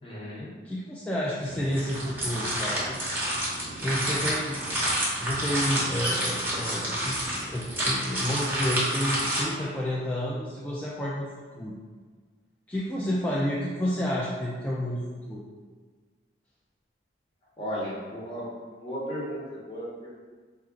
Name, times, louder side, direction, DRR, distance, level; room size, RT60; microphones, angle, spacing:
voice 1, 0.0-0.5 17.6-18.5 18.8-20.2, equal, 30° left, -6 dB, 0.9 m, -35 dB
voice 2, 0.6-3.0 3.8-4.6 5.2-7.2 7.5-11.3 11.6-11.8 12.7-15.4, equal, 10° left, -7 dB, 0.3 m, -30 dB
sound 1, 1.4-9.4, right 1 dB, 10° right, 0.8 m, -29 dB
4.1 x 2.4 x 3.7 m, 1.5 s
head